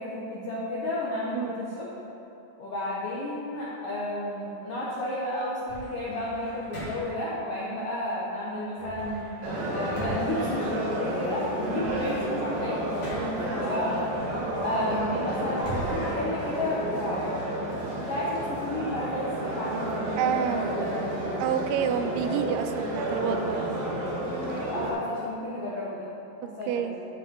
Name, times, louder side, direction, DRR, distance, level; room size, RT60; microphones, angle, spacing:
voice 1, 0.0-1.9 2.6-9.3 9.7-14.0 14.6-17.4 18.1-20.9 22.0-22.1 24.7-26.1 26.4-26.9, left 1 dB, 85° left, -7 dB, 1.3 m, -32 dB
voice 2, 1.3-1.6 20.2-20.7 21.4-23.7 23.9-24.0 26.7-27.0, right 8 dB, 85° right, 7 dB, 2.5 m, -28 dB
sound 1, 5.7-7.3 8.8-11.2 11.6-13.5 14.1-17.1, right 2 dB, 40° left, 1.8 m, -41 dB
sound 2, 9.4-24.9, right 1 dB, 70° right, 3.2 m, -31 dB
13.5 x 5.6 x 3.7 m, 2.9 s
omnidirectional pair, 4.5 m